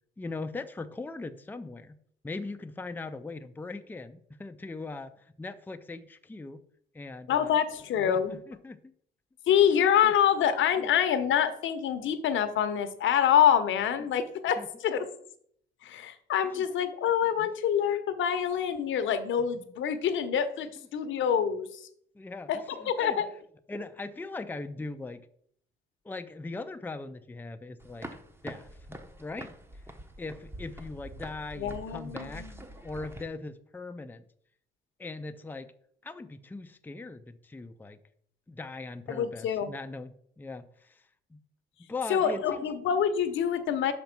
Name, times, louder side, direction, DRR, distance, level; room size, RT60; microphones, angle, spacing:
voice 1, 0.2-2.0 2.2-6.6 6.9-7.6 8.0-8.9 10.0-10.1 10.8-10.9 14.0-14.1 14.6-14.7 16.5-16.6 17.4-17.5 19.5-19.6 20.8-21.1 22.1-23.3 23.7-25.2 26.0-28.1 28.4-29.8 30.2-32.5 32.8-34.2 35.0-35.7 36.0-38.0 38.5-40.1 40.4-41.0 41.3-41.4 41.8-42.6, left 3 dB, 10° left, 8 dB, 0.5 m, -40 dB
voice 2, 7.3-8.4 9.5-15.0 15.8-21.9 22.5-22.6 22.9-23.3 31.6-32.5 39.1-39.7 42.1-43.9, left 9 dB, 75° left, 10 dB, 0.9 m, -26 dB
sound 1, 27.8-33.2, right 1 dB, 10° right, 0.9 m, -45 dB
5.8 x 5.3 x 5.9 m, 0.66 s
cardioid pair, 90°, 20 cm